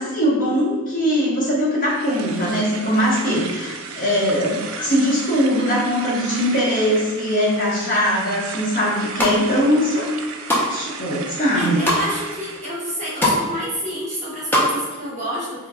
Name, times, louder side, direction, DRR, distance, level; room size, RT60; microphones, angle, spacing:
voice 1, 0.0-10.1 10.7-11.9, equal, 40° left, -5 dB, 0.9 m, -21 dB
sound 1, 1.8-12.7, right 5 dB, 70° right, 0.3 m, -35 dB
sound 2, 8.9-9.4 9.9-10.7 11.1-12.0 12.6-12.7 12.9-13.4 13.7-14.7 15.0-15.1, left 1 dB, 10° left, 0.6 m, -21 dB
voice 2, 11.5-15.7, equal, 35° right, -6 dB, 1.0 m, -29 dB
2.9 x 2.3 x 3.5 m, 1.4 s
head